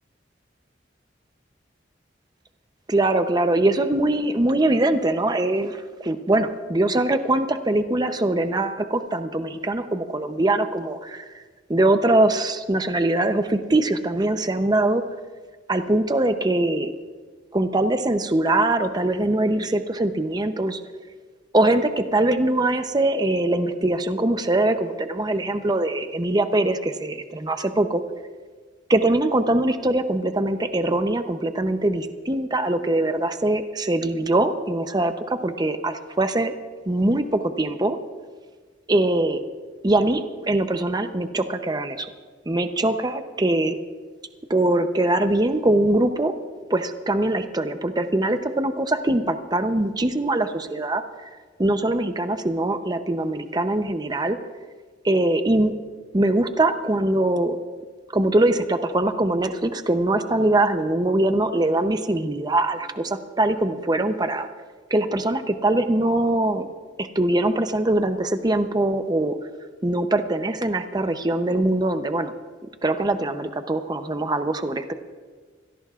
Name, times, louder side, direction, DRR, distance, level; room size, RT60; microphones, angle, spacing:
voice 1, 2.9-11.2 11.7-15.0 15.7-16.9 17.5-20.8 21.5-28.0 28.9-36.5 36.9-38.0 38.9-39.4 39.8-42.1 42.5-43.8 44.5-46.3 46.7-51.0 51.6-54.4 55.0-55.7 56.1-57.6 58.1-64.5 64.9-66.7 67.0-69.4 69.8-72.3 72.8-74.9, right 2 dB, 20° right, 8 dB, 0.7 m, -22 dB
25.0 x 17.0 x 2.4 m, 1.5 s
head